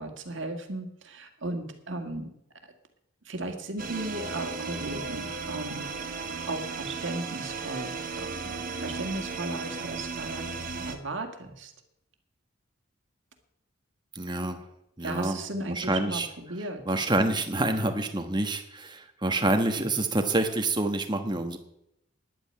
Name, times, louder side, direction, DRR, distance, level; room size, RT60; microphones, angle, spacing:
voice 1, 0.0-2.3 3.3-6.2 6.5-11.7 15.0-16.8 19.7-20.0, right 2 dB, 65° right, 5 dB, 2.0 m, -36 dB
sound 1, 3.8-10.9, right 4 dB, 45° right, 1.4 m, -35 dB
voice 2, 14.1-14.6 15.0-16.3 16.9-21.6, right 2 dB, 20° right, 6 dB, 1.3 m, -27 dB
11.0 x 8.8 x 8.9 m, 0.79 s
head